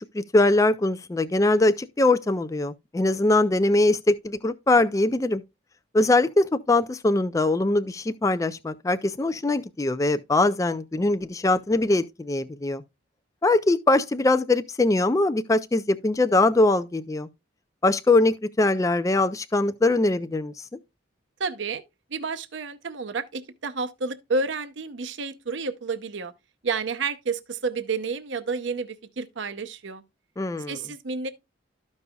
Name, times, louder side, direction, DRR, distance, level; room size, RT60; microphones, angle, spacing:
voice 1, 0.1-5.4 5.9-12.8 13.4-17.3 17.8-20.8 30.4-30.8, left 2 dB, 15° left, 0.3 m, -22 dB
voice 2, 21.4-21.8 22.1-26.3 26.6-30.0 30.7-31.3, right 4 dB, 75° right, 0.7 m, -30 dB
13.0 x 5.4 x 2.3 m
head